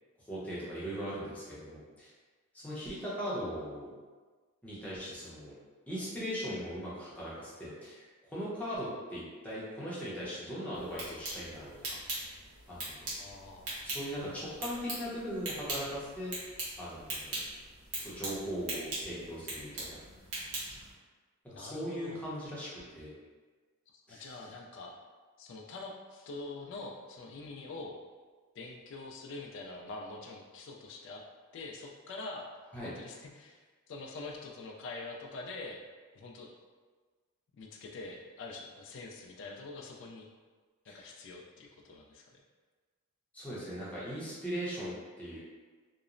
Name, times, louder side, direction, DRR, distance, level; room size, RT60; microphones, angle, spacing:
voice 1, 0.3-2.1 2.5-3.9 4.6-5.5 5.9-11.7 12.2-12.4 12.7-13.1 13.8-16.3 16.8-17.4 18.0-20.0 21.5-23.1 24.1-24.3 32.7-32.9 40.9-41.1 43.3-45.4, equal, 5° left, -9 dB, 0.6 m, -39 dB
sound 1, 10.7-20.9, right 2 dB, 85° right, 0.9 m, -41 dB
voice 2, 12.9-13.7 21.5-22.2 24.1-24.9 25.4-27.9 28.5-31.2 31.5-32.5 32.8-35.8 36.1-36.5 37.5-40.3 40.8-42.4, left 3 dB, 55° left, 0 dB, 0.3 m, -45 dB
2.9 x 2.0 x 2.4 m, 1.4 s
head